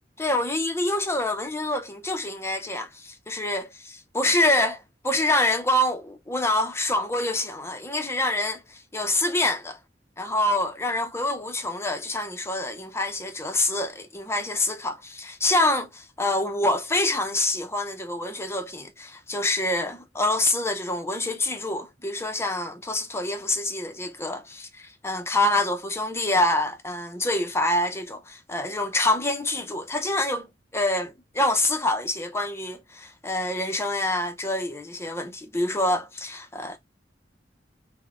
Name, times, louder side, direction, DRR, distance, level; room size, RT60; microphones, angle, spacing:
voice 1, 0.2-9.8 10.2-30.5 30.7-36.8, left 1 dB, 15° left, 0.6 m, -26 dB
3.9 x 2.2 x 3.6 m
head